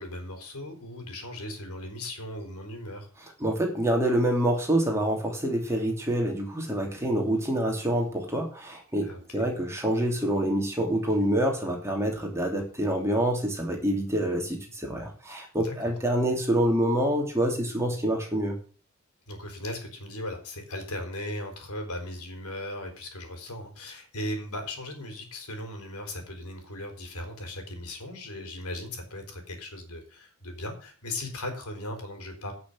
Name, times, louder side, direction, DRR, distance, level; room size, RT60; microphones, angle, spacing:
voice 1, 0.0-3.1 9.0-9.5 15.6-15.9 19.3-32.5, left 1 dB, 85° left, 5 dB, 3.9 m, -37 dB
voice 2, 3.4-18.5, right 1 dB, 10° right, 0 dB, 2.9 m, -26 dB
11.0 x 6.4 x 7.8 m, 0.39 s
head